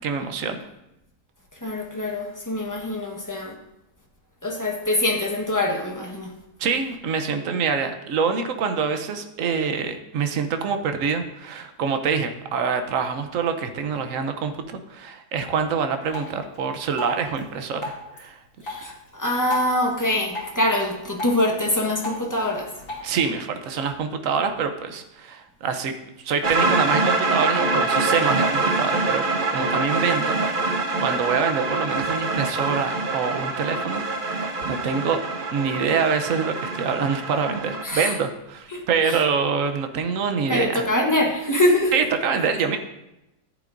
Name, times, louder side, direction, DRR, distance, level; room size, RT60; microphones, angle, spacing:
voice 1, 0.0-0.6 6.6-18.4 23.0-25.9 26.2-35.2 35.5-40.9 41.9-42.8, right 6 dB, 60° right, 7 dB, 1.1 m, -25 dB
voice 2, 1.6-3.5 4.4-6.3 18.6-22.7 37.8-38.1 38.7-39.2 40.5-41.9, left 1 dB, 15° left, 0 dB, 1.1 m, -24 dB
Drip, 16.1-23.1, left 2 dB, 55° left, 2.6 m, -38 dB
sound 1, 26.4-37.8, right 3 dB, 40° right, 0.9 m, -25 dB
14.0 x 8.4 x 2.6 m, 0.91 s
omnidirectional pair, 1.7 m